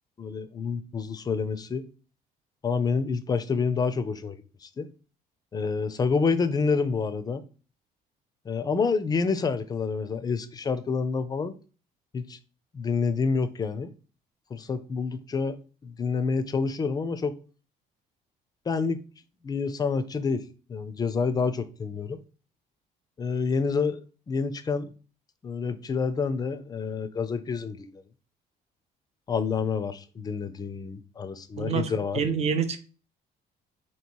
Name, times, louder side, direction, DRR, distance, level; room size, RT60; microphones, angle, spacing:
voice 1, 0.2-1.9 2.6-4.4 4.6-4.9 5.5-7.4 8.5-11.6 12.1-12.4 12.7-13.9 14.5-17.4 18.7-19.0 19.4-20.4 20.7-22.2 23.2-24.9 25.4-28.0 29.3-32.2, left 5 dB, 25° left, 0.4 m, -28 dB
voice 2, 31.6-32.8, right 6 dB, 40° right, 0.6 m, -27 dB
3.0 x 3.0 x 4.4 m
cardioid pair, 110°, 17 cm